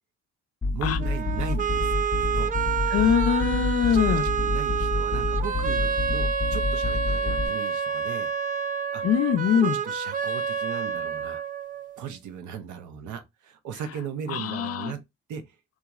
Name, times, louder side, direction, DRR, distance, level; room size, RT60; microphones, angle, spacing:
sound 1, 0.6-7.5, left 3 dB, 10° left, 0.7 m, -28 dB
voice 1, 0.7-1.9 2.2-2.6 3.9-8.3 8.9-9.0 9.5-11.4 12.0-15.0 15.3-15.6, right 7 dB, 75° right, 0.7 m, -37 dB
sound 2, 1.0-12.0, right 6 dB, 30° right, 0.4 m, -29 dB
voice 2, 2.9-4.3 9.0-9.8 14.3-14.9, left 8 dB, 55° left, 0.4 m, -23 dB
2.9 x 2.3 x 2.3 m
cardioid pair, 90°, 30 cm